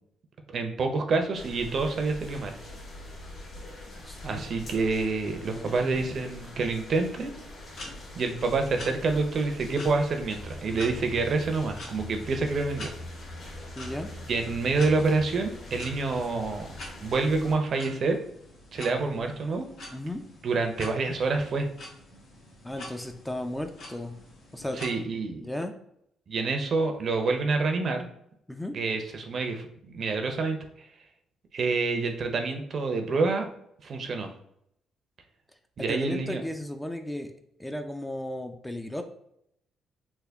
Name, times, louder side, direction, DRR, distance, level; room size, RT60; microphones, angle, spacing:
voice 1, 0.5-2.6 4.2-7.3 8.1-12.9 14.3-16.7 17.0-18.2 18.7-19.6 20.4-21.7 24.8-25.5 26.3-28.1 28.7-30.9 31.5-33.5 33.8-34.3 35.8-36.4, right 3 dB, 55° right, 5 dB, 0.6 m, -27 dB
sound 1, 1.3-17.5, left 1 dB, 55° left, 1.5 m, -43 dB
voice 2, 5.4-6.0 13.8-14.1 19.9-20.2 22.6-24.2 24.5-24.8 25.4-25.7 28.5-28.8 35.8-37.3 37.6-39.0, left 1 dB, 5° left, 6 dB, 0.4 m, -35 dB
sound 2, 7.7-24.9, left 1 dB, 70° left, 1.3 m, -47 dB
3.5 x 2.2 x 3.4 m, 0.75 s
cardioid pair, 90°, 0 cm